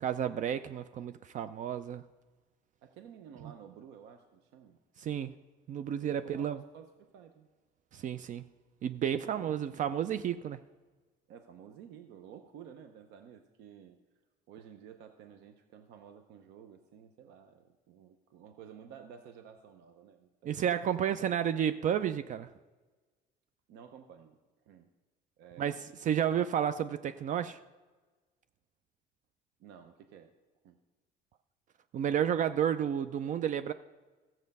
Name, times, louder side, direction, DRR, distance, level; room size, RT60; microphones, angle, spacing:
voice 1, 0.0-2.0 3.4-3.5 5.0-5.3 5.7-6.6 7.9-8.4 8.8-10.6 20.4-22.5 25.6-27.6 31.9-33.7, right 9 dB, 50° right, 12 dB, 0.4 m, -31 dB
voice 2, 2.8-4.8 6.0-7.5 9.2-9.6 11.3-14.0 14.5-20.6 21.1-21.2 23.7-24.4 24.7-24.9 25.4-25.9 29.6-30.3 30.6-30.8, right 8 dB, 90° right, 7 dB, 0.7 m, -53 dB
14.0 x 7.5 x 5.3 m, 1.3 s
cardioid pair, 110°, 17 cm